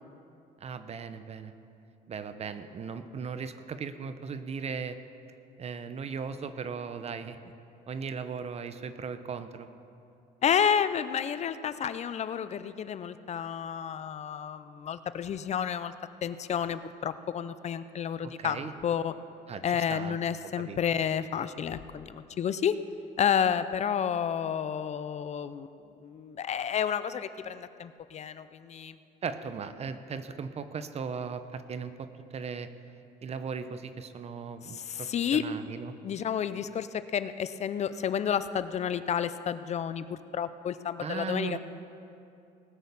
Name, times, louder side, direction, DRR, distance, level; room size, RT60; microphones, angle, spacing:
voice 1, 0.6-1.5 2.1-5.0 5.6-7.4 7.9-9.7 18.2-18.7 19.5-20.2 20.5-20.8 29.2-32.7 33.2-35.9 41.0-41.6, right 5 dB, 40° right, 11 dB, 0.8 m, -37 dB
voice 2, 10.4-15.9 16.2-19.1 19.6-22.7 23.2-29.0 34.7-35.4 36.0-41.6, left 8 dB, 40° left, 13 dB, 0.5 m, -30 dB
19.0 x 6.4 x 7.0 m, 2.6 s
cardioid pair, 110°, 17 cm